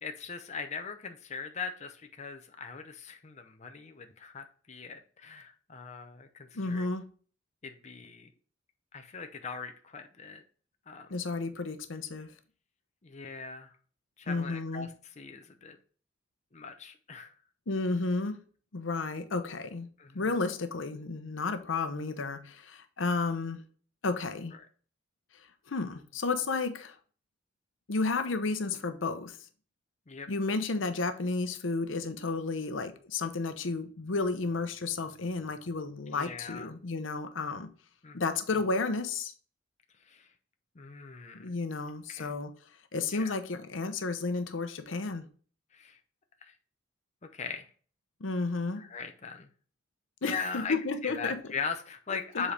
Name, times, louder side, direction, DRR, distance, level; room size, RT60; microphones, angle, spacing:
voice 1, 0.0-6.9 7.6-8.3 8.9-10.4 10.9-11.1 13.0-13.7 14.2-14.9 15.2-15.8 16.5-17.3 20.0-20.3 30.1-30.3 36.1-36.7 38.0-38.2 40.1-40.3 40.8-41.5 42.1-42.3 43.1-43.3 45.7-46.0 46.4-46.5 47.3-47.7 48.8-49.5 50.2-50.8 51.0-52.5, left 5 dB, 35° left, 0.7 m, -40 dB
voice 2, 6.5-7.1 11.1-12.3 14.3-14.9 17.7-18.4 18.7-19.9 20.1-23.6 24.0-24.6 25.3-27.0 27.9-29.4 30.3-37.7 38.1-39.3 41.3-42.5 42.9-45.3 48.2-48.8 50.2-51.4 52.3-52.4, left 3 dB, 85° left, 0.8 m, -32 dB
7.3 x 4.3 x 3.3 m
head